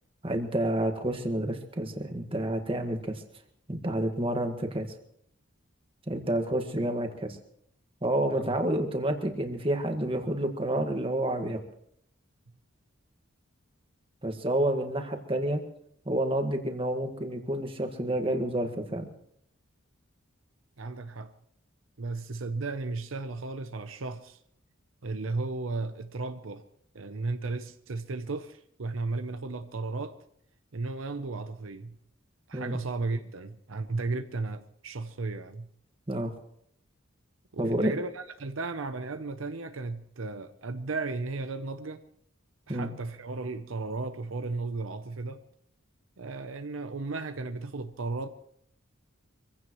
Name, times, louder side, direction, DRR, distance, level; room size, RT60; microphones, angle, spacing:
voice 1, 0.2-3.2 3.7-4.9 6.1-7.4 8.0-11.6 14.2-15.6 16.0-19.1 32.5-32.8 36.1-36.3 37.6-37.9 42.7-42.9, right 1 dB, 25° right, 1.7 m, -29 dB
voice 2, 20.8-21.3 22.0-24.4 25.0-26.6 26.9-30.1 30.7-32.0 32.5-35.7 37.5-42.0 42.7-45.4 46.2-48.3, right 3 dB, 75° right, 0.7 m, -35 dB
25.0 x 16.0 x 3.1 m
head